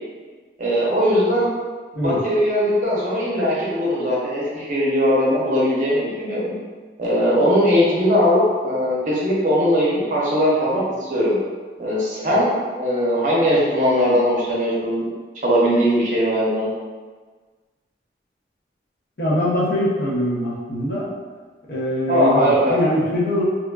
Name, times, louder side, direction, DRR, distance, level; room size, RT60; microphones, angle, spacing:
voice 1, 0.6-1.5 2.0-6.6 7.0-11.4 11.8-15.0 15.4-16.7 22.1-22.8, equal, 45° right, -6 dB, 0.7 m, -19 dB
voice 2, 19.2-21.1 21.7-23.4, left 1 dB, 65° left, -6 dB, 0.7 m, -22 dB
2.8 x 2.3 x 2.3 m, 1.4 s
head